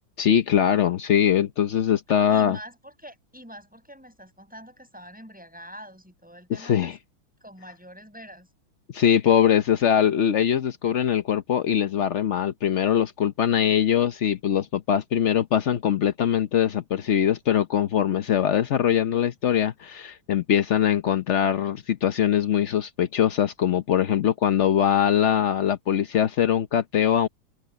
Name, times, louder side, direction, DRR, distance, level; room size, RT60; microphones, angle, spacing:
voice 1, 0.2-2.6 6.6-7.0 8.9-27.3, left 9 dB, 75° left, 0.6 m, -22 dB
voice 2, 2.1-6.9 7.4-8.5, equal, 5° right, 7.3 m, -45 dB
open air
omnidirectional pair, 2.3 m